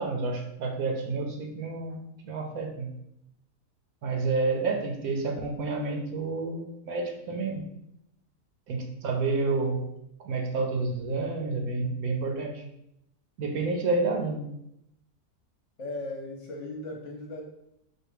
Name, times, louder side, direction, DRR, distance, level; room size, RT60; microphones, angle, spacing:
voice 1, 0.0-2.9 4.0-7.6 8.7-9.8 10.2-12.6 13.4-14.5, right 3 dB, 70° right, 2 dB, 1.1 m, -29 dB
voice 2, 15.8-17.4, left 2 dB, 55° left, 0 dB, 1.0 m, -37 dB
4.4 x 2.4 x 4.8 m, 0.79 s
omnidirectional pair, 1.7 m